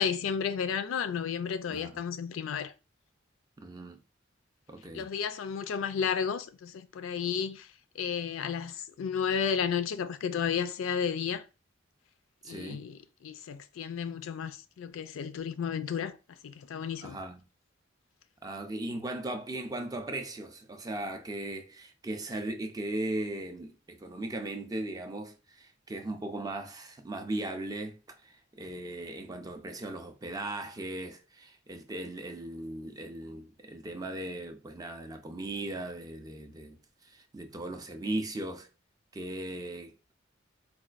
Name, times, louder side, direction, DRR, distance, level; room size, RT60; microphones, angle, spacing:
voice 1, 0.0-2.7 4.9-7.7 8.0-11.4 12.5-17.2, left 7 dB, 90° left, 0.3 m, -32 dB
voice 2, 1.7-2.0 3.6-4.0 4.7-5.1 12.4-12.8 17.0-17.4 18.4-38.7 39.1-39.9, right 2 dB, 20° right, 0.4 m, -38 dB
4.0 x 2.2 x 2.4 m
head